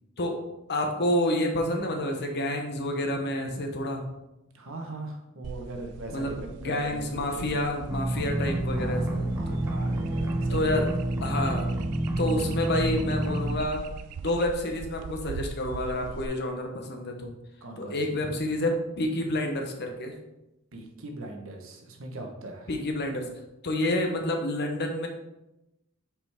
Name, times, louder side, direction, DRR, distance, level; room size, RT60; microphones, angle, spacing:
voice 1, 0.7-4.0 6.1-9.6 10.5-10.9 11.2-11.7 12.2-13.8 14.2-17.3 17.8-20.1 22.7-23.3 23.6-25.1, left 1 dB, 50° left, 3 dB, 0.9 m, -29 dB
voice 2, 4.5-7.0 7.3-7.6 8.7-10.8 17.6-18.0 20.7-22.7, right 2 dB, 65° right, 2 dB, 1.0 m, -40 dB
sound 1, 5.4-16.3, right 5 dB, 90° right, 0.3 m, -41 dB
sound 2, 7.9-13.6, right 1 dB, 10° right, 0.5 m, -28 dB
5.9 x 4.8 x 3.4 m, 0.93 s
head